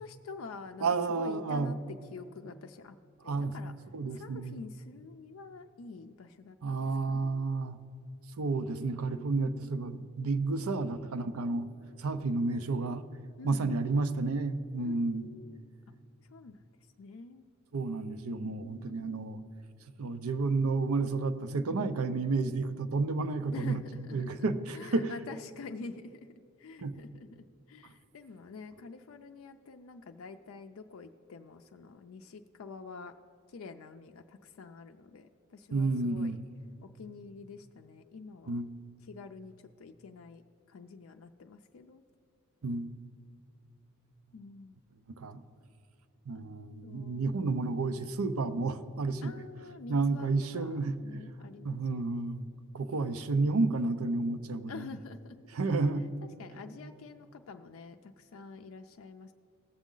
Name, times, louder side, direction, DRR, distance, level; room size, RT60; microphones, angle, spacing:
voice 1, 0.0-0.9 1.1-1.8 2.1-3.0 3.2-3.7 4.1-7.6 9.2-9.7 13.4-13.7 14.8-15.6 16.3-16.6 17.0-17.4 18.4-19.4 23.5-24.4 24.7-26.2 26.6-27.3 27.7-33.1 33.5-36.4 36.8-38.6 39.1-40.4 40.7-42.0 44.3-44.8 46.4-46.5 46.8-47.4 49.2-52.3 54.7-55.4 56.4-59.3, left 4 dB, 65° left, 5 dB, 0.4 m, -47 dB
voice 2, 0.8-1.7 3.2-3.5 3.9-4.6 6.6-7.8 8.4-11.7 12.0-13.0 13.4-15.3 17.7-19.4 20.0-23.8 24.1-25.1 26.8-26.9 35.7-36.4 38.5-38.7 42.6-42.9 45.2-45.4 46.3-49.3 49.9-51.2 51.6-52.4 52.7-54.9 55.5-56.0, right 3 dB, 85° right, 11 dB, 0.6 m, -31 dB
17.5 x 7.2 x 3.8 m, 2.6 s
head